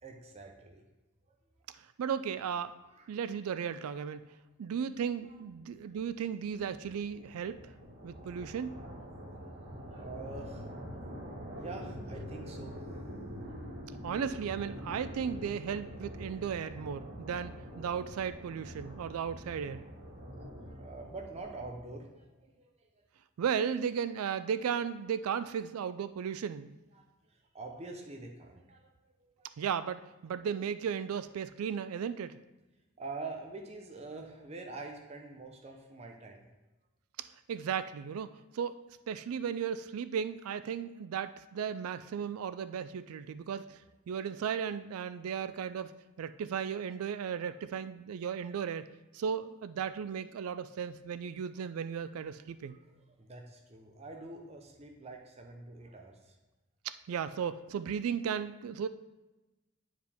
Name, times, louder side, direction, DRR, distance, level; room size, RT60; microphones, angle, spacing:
voice 1, 0.0-0.8 1.3-1.4 2.8-3.1 5.2-5.4 5.8-6.0 9.5-12.8 13.1-13.8 18.2-18.3 20.1-20.3 20.7-23.0 26.9-29.5 33.0-36.5 47.1-47.3 52.7-56.4, right 3 dB, 30° right, 2 dB, 0.7 m, -46 dB
voice 2, 2.0-2.7 3.1-4.3 4.6-7.6 8.0-8.8 14.0-19.8 23.4-26.7 29.6-32.4 37.5-43.8 44.1-48.9 49.1-52.8 56.8-58.9, right 7 dB, 85° right, 13 dB, 0.3 m, -35 dB
sound 1, 5.8-22.0, equal, 50° right, 1.8 m, -45 dB
9.1 x 4.8 x 3.5 m, 1.0 s
head